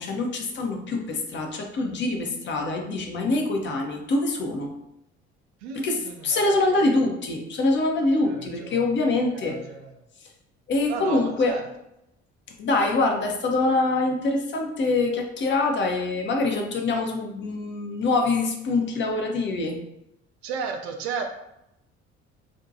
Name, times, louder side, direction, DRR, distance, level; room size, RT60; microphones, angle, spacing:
voice 1, 0.0-4.7 5.7-9.6 10.7-11.6 12.6-19.8, left 2 dB, 35° left, 2 dB, 0.5 m, -24 dB
voice 2, 5.6-6.9 8.2-8.8 9.3-9.9 10.9-11.6 20.4-21.2, right 6 dB, 70° right, 4 dB, 0.5 m, -34 dB
2.6 x 2.2 x 2.6 m, 0.83 s
figure-of-eight pair, 50°, 34 cm